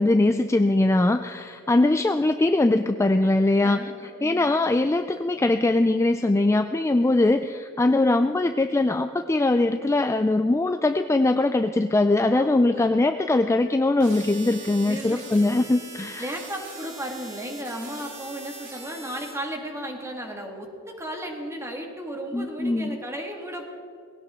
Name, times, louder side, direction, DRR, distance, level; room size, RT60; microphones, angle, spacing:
voice 1, 0.0-3.8 4.2-16.3 22.3-23.0, left 2 dB, 15° left, 8 dB, 0.3 m, -21 dB
voice 2, 1.7-2.3 3.6-4.6 7.2-7.5 12.3-12.9 14.9-15.3 16.2-23.6, equal, 15° right, 2 dB, 1.8 m, -35 dB
sound 1, 14.0-19.3, right 4 dB, 55° right, 3.0 m, -41 dB
19.5 x 16.5 x 3.7 m, 2.4 s
head